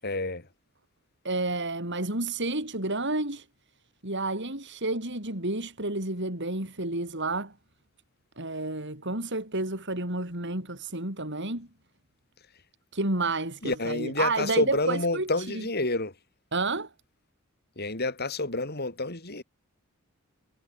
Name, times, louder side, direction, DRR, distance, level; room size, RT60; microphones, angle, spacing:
voice 1, 0.0-0.5 13.6-16.1 17.8-19.4, left 2 dB, 50° left, 6.7 m, -29 dB
voice 2, 1.2-3.5 4.0-7.5 8.4-11.7 12.9-15.6 16.5-16.9, right 2 dB, 60° right, 7.2 m, -30 dB
head